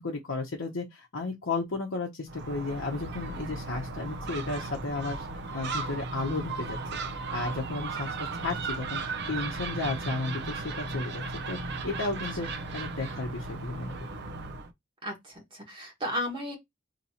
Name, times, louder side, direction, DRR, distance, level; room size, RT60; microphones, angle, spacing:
voice 1, 0.0-5.3 5.5-7.0 7.3-9.0 9.3-11.6 11.8-13.9, left 3 dB, 90° left, 0.8 m, -33 dB
Gull seagull, 2.3-14.7, right 3 dB, 60° right, 0.6 m, -36 dB
voice 2, 15.0-16.6, left 1 dB, 25° right, 1.2 m, -34 dB
2.9 x 2.9 x 4.1 m
head